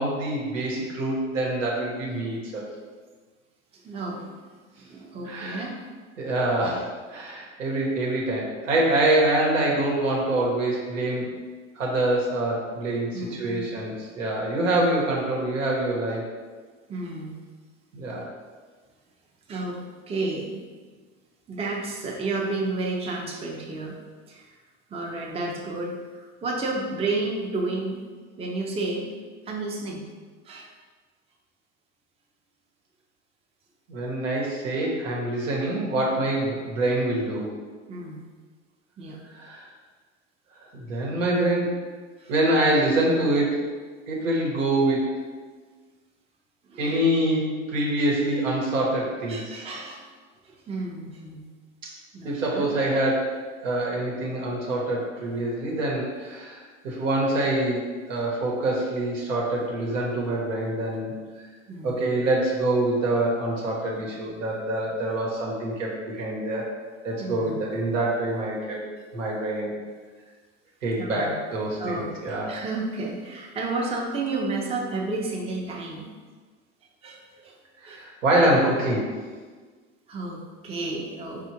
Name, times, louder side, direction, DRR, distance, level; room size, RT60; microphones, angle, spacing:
voice 1, 0.0-2.7 5.2-5.6 6.2-11.3 11.7-16.3 17.9-18.3 33.9-37.5 39.3-39.7 40.7-41.8 42.3-43.6 44.1-45.2 46.8-49.6 51.8-51.9 52.2-61.1 61.8-66.6 67.0-68.8 69.1-69.7 70.8-72.6 77.8-79.1, right 1 dB, 80° right, -3 dB, 1.1 m, -25 dB
voice 2, 3.7-4.3 4.8-5.8 13.1-13.7 16.9-17.4 19.5-19.8 20.1-20.6 21.5-24.0 24.3-24.5 24.9-28.0 28.4-29.1 29.5-30.1 30.5-30.7 37.9-38.2 39.0-39.2 42.2-42.3 46.7-47.0 49.3-50.0 50.4-51.5 52.1-52.7 55.3-55.4 61.7-62.0 67.2-67.6 71.0-71.4 71.8-76.1 77.0-77.5 77.9-78.0 80.1-81.5, right 2 dB, 15° right, -1 dB, 0.5 m, -31 dB
4.7 x 2.5 x 2.8 m, 1.5 s
hypercardioid pair, 90°, 38 cm